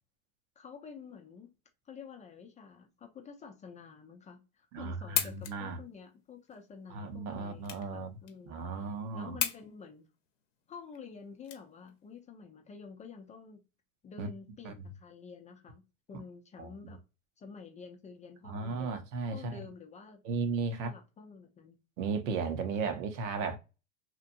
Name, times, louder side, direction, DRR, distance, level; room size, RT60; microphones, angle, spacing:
voice 1, 0.6-1.5 1.9-10.1 10.7-13.6 14.0-15.8 16.1-17.0 17.4-19.0 19.3-20.2 20.8-21.8, left 5 dB, 20° left, 0.5 m, -49 dB
voice 2, 4.7-5.8 6.9-8.2 8.5-9.4 14.2-14.3 14.6-14.7 16.6-16.7 18.4-19.6 20.2-20.9 22.0-23.6, right 4 dB, 65° right, 0.9 m, -35 dB
sound 1, 4.8-12.2, left 10 dB, 70° left, 0.8 m, -38 dB
2.9 x 2.4 x 2.6 m
hypercardioid pair, 115°, 39 cm